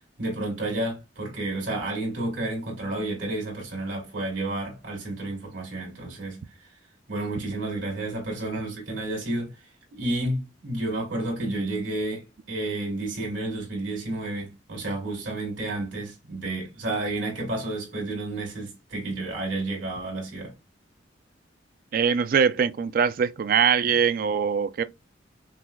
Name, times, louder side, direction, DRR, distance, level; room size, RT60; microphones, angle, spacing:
voice 1, 0.2-6.7 7.1-9.6 9.9-20.5, right 2 dB, 85° right, 2.3 m, -31 dB
voice 2, 21.9-24.8, right 7 dB, 50° right, 0.3 m, -22 dB
5.8 x 2.1 x 2.2 m
head